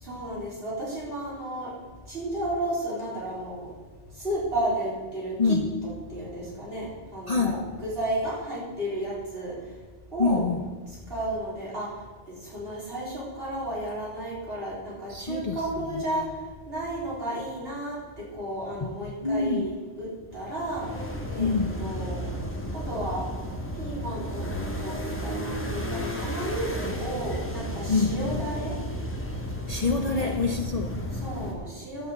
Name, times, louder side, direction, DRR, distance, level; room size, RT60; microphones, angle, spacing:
voice 1, 0.0-1.7 2.1-3.7 4.2-5.6 6.1-9.5 10.1-10.4 11.1-11.9 12.3-16.2 16.7-18.0 18.3-19.7 20.0-20.9 21.3-21.5 21.8-22.3 22.7-23.3 23.8-25.9 26.1-28.7 30.1-30.4 31.2-32.1, right 1 dB, 55° right, 4.5 m, -33 dB
voice 2, 5.4-5.7 7.3-7.7 10.2-10.6 15.1-15.6 18.8-18.9 19.2-19.7 21.4-21.8 27.9-28.2 29.7-31.0, left 4 dB, 40° left, 0.7 m, -26 dB
sound 1, 20.3-31.5, equal, 10° left, 1.3 m, -33 dB
11.5 x 5.7 x 7.8 m
omnidirectional pair, 1.2 m